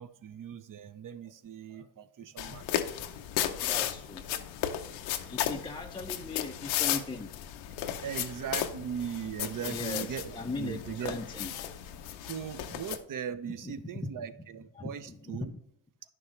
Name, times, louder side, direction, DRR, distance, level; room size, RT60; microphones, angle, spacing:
voice 1, 0.0-2.8 8.0-11.2 12.3-15.5, right 8 dB, 45° right, 13 dB, 0.8 m, -39 dB
sound 1, 2.4-13.0, left 11 dB, 90° left, 0.8 m, -35 dB
voice 2, 3.6-4.3 5.3-7.3 8.0-8.3 9.6-11.7 12.0-12.1 13.5-14.1 14.8-15.6, left 3 dB, 10° left, 2 dB, 0.5 m, -39 dB
10.5 x 6.2 x 3.2 m, 0.76 s
supercardioid pair, 70°, 45 cm